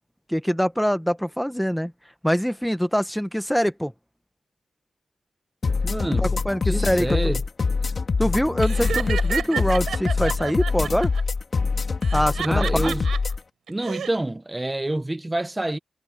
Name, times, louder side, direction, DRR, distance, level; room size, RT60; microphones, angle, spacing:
voice 1, 0.3-1.9 2.2-3.9 6.2-7.3 8.2-11.1 12.1-12.9, equal, ahead, 1.4 m, -24 dB
sound 1, 5.6-13.4, left 4 dB, 45° left, 2.5 m, -24 dB
voice 2, 5.8-6.3 6.6-7.4 12.4-13.1 13.7-15.8, right 1 dB, 15° right, 1.3 m, -27 dB
Laughter, 8.6-11.2 12.0-13.2 13.7-14.1, right 8 dB, 85° right, 5.8 m, -30 dB
cardioid pair, 85°, 0 cm